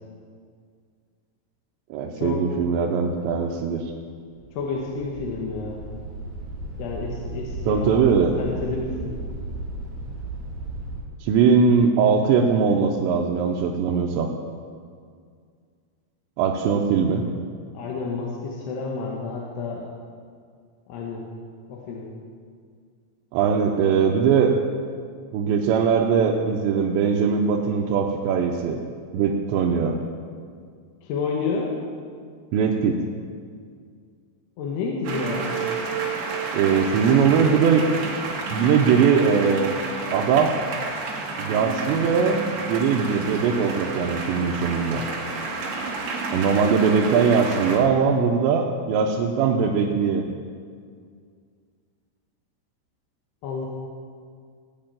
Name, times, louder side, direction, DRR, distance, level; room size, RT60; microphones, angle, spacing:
voice 1, 1.9-3.9 7.7-8.3 11.2-14.3 16.4-17.2 23.3-24.5 25.3-28.8 29.1-30.0 32.5-33.0 36.5-37.8 38.5-39.7 40.1-40.5 41.4-42.4 42.7-45.1 46.3-50.3, right 6 dB, 90° right, -1 dB, 3.1 m, -20 dB
sound 1, 4.3-11.0, right 2 dB, 55° right, 3.8 m, -35 dB
voice 2, 4.5-5.8 6.8-8.0 8.4-9.2 17.7-19.8 20.9-21.2 21.7-22.1 31.0-31.7 34.6-35.6 53.4-53.7, left 4 dB, 75° left, -2 dB, 3.3 m, -30 dB
sound 2, 35.0-47.8, right 4 dB, 70° right, 3.7 m, -30 dB
17.5 x 6.0 x 8.9 m, 2.1 s
omnidirectional pair, 5.0 m